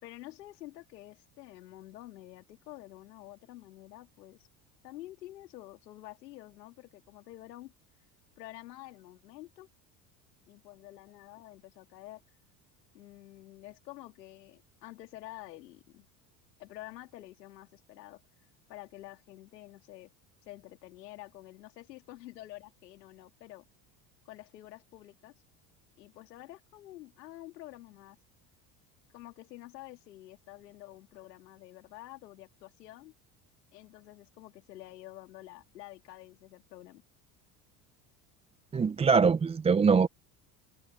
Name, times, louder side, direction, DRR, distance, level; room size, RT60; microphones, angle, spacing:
voice 1, 0.0-4.5 4.8-7.7 8.4-9.7 10.5-12.4 12.9-16.1 16.6-18.2 18.7-20.1 20.4-23.6 24.2-25.3 26.0-28.2 29.1-33.1 33.7-37.0, left 16 dB, 85° left, 2.9 m, -49 dB
voice 2, 38.7-40.1, right 5 dB, 15° right, 0.4 m, -23 dB
hypercardioid pair, 80°, 48 cm